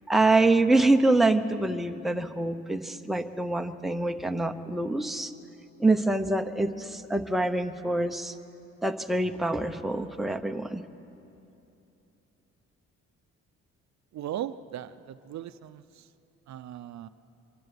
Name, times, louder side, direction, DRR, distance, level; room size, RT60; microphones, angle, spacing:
voice 1, 0.1-5.3 5.8-8.4 8.8-10.8, right 2 dB, ahead, 6 dB, 0.8 m, -25 dB
voice 2, 14.1-16.1 16.5-17.1, right 11 dB, 65° right, 13 dB, 0.6 m, -38 dB
24.0 x 12.0 x 9.7 m, 2.9 s
cardioid pair, 90°, 30 cm